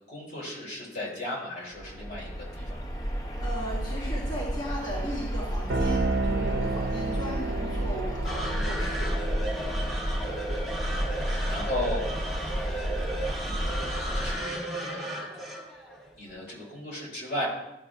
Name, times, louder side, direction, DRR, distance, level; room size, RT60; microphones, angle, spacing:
voice 1, 0.1-2.8 9.7-10.5 10.8-12.9 13.4-13.7 14.1-15.1 16.1-17.5, left 1 dB, 65° left, -4 dB, 3.0 m, -37 dB
sound 1, 1.7-14.4, equal, 20° left, 0.6 m, -32 dB
voice 2, 3.4-9.1, right 1 dB, 40° left, -10 dB, 2.3 m, -36 dB
sound 2, 5.7-11.3, right 3 dB, 65° right, 0.6 m, -32 dB
sound 3, 8.2-16.7, right 1 dB, ahead, 1.4 m, -35 dB
12.5 x 5.2 x 2.5 m, 0.91 s
head